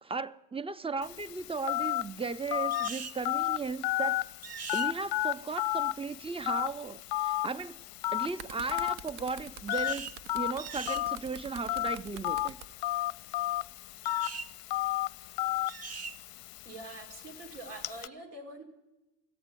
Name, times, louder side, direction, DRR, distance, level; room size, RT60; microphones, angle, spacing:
voice 1, 0.0-4.2 4.7-7.8 8.1-10.1 10.3-12.6, right 4 dB, 15° right, 0.4 m, -36 dB
Telephone, 1.0-18.1, left 16 dB, 55° left, 0.5 m, -34 dB
sound 1, 2.7-3.2 4.4-4.9 9.7-10.2 10.6-11.0 14.0-14.5 15.7-16.2, right 6 dB, 35° right, 0.8 m, -41 dB
sound 2, 8.0-12.7 13.6-13.8, right 7 dB, 65° right, 0.8 m, -46 dB
voice 2, 16.6-18.6, right 2 dB, 90° right, 2.2 m, -45 dB
14.5 x 8.0 x 9.6 m
hypercardioid pair, 60°, 44 cm